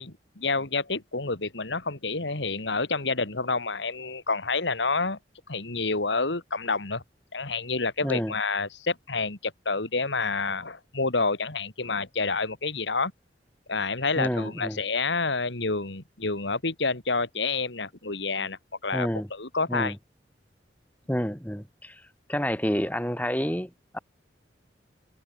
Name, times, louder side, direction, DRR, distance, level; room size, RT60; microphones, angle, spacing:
voice 1, 0.0-5.2 5.5-7.0 7.3-13.1 13.7-19.9, left 3 dB, 80° left, 2.5 m, -28 dB
voice 2, 8.0-8.3 14.2-14.8 18.9-19.3 19.7-20.0 21.1-22.0 22.3-24.0, equal, 10° left, 6.4 m, -29 dB
head